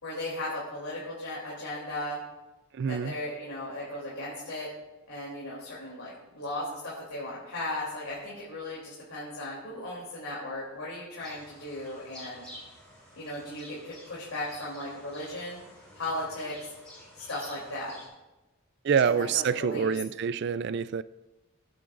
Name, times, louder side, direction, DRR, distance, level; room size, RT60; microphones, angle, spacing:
voice 1, 0.0-2.2 2.9-4.7 5.1-12.4 13.2-15.6 15.9-16.7 17.1-17.9 19.0-20.0, left 1 dB, 90° left, 3.2 m, -36 dB
voice 2, 2.8-3.1 18.8-21.0, right 6 dB, 55° right, 0.3 m, -26 dB
sound 1, 11.2-18.1, equal, 5° left, 4.4 m, -50 dB
21.0 x 8.6 x 2.5 m
head